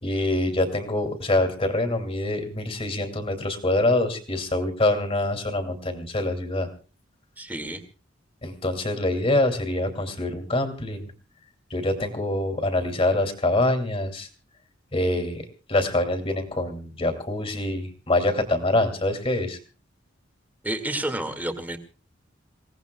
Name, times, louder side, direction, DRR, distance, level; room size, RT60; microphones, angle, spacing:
voice 1, 0.0-6.7 8.4-11.1 11.7-14.3 14.9-19.6, left 2 dB, 30° left, 6 dB, 2.7 m, -25 dB
voice 2, 7.4-7.8 20.6-21.8, right 1 dB, 10° right, 7 dB, 2.1 m, -30 dB
28.5 x 17.5 x 2.3 m, 0.34 s
head